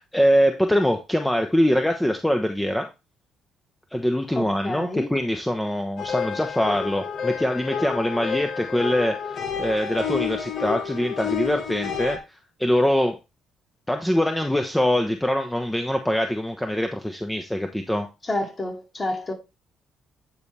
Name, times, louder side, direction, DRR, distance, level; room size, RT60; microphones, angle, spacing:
voice 1, 0.0-2.9 3.9-13.2 13.9-18.1, equal, 10° left, 1.0 m, -23 dB
voice 2, 4.4-5.1 18.2-19.3, left 2 dB, 30° left, 2.7 m, -29 dB
sound 1, 6.0-12.2, left 7 dB, 60° left, 1.1 m, -30 dB
9.6 x 4.1 x 3.4 m
hypercardioid pair, 55°, 0 cm